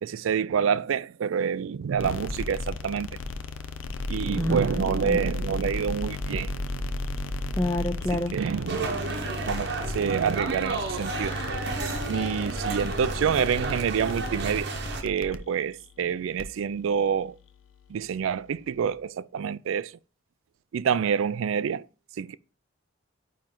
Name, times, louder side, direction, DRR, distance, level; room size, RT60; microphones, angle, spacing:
voice 1, 0.0-3.1 4.1-6.6 8.3-9.0 9.4-11.3 12.1-14.7 15.0-17.4 17.9-19.9 20.7-21.9 22.2-22.4, right 7 dB, 75° right, 0.3 m, -27 dB
sound 1, 1.9-19.0, left 2 dB, 75° left, 0.6 m, -35 dB
voice 2, 4.4-4.8 5.1-5.2 7.5-8.3, left 1 dB, 15° left, 0.4 m, -28 dB
sound 2, 8.7-15.0, right 3 dB, 55° right, 0.9 m, -32 dB
8.9 x 3.1 x 3.7 m
head